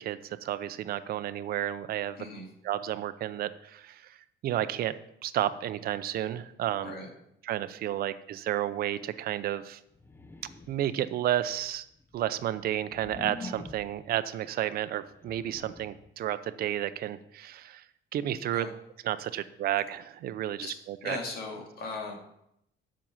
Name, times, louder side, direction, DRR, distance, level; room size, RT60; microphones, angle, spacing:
voice 1, 0.0-2.3 2.6-4.9 5.2-7.0 7.4-9.8 10.7-11.8 12.1-17.9 18.1-18.7 19.0-21.2, right 12 dB, 50° right, 13 dB, 0.5 m, -32 dB
sound 1, 9.9-11.0 11.7-14.1 15.0-16.1, left 3 dB, 10° left, 0.4 m, -45 dB
voice 2, 21.0-22.2, left 3 dB, 55° left, 2 dB, 2.1 m, -37 dB
7.6 x 6.1 x 7.1 m, 0.78 s
cardioid pair, 170°, 20 cm